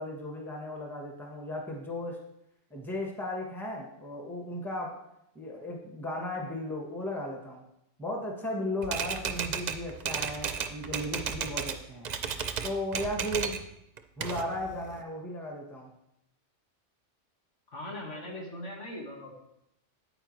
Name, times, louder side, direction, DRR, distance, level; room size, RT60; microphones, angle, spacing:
voice 1, 0.0-2.2 2.7-5.0 5.3-7.6 8.0-12.1 12.6-13.6 14.2-15.9, left 1 dB, ahead, 0 dB, 1.1 m, -35 dB
Typewriter, 8.8-11.8 12.0-13.6 14.0-15.0, right 7 dB, 50° right, 0.5 m, -34 dB
voice 2, 17.7-19.3, left 1 dB, 85° left, -1 dB, 2.1 m, -40 dB
8.9 x 8.7 x 3.1 m, 0.82 s
omnidirectional pair, 1.2 m